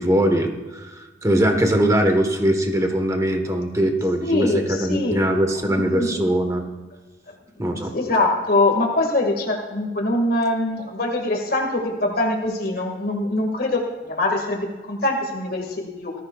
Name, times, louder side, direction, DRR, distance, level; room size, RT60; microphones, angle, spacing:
voice 1, 0.0-6.6 7.6-7.9, right 1 dB, 20° right, 4 dB, 1.3 m, -21 dB
voice 2, 4.2-5.2 5.7-6.2 7.6-16.1, left 2 dB, 60° left, 1 dB, 1.9 m, -23 dB
19.0 x 14.0 x 2.4 m, 1.2 s
head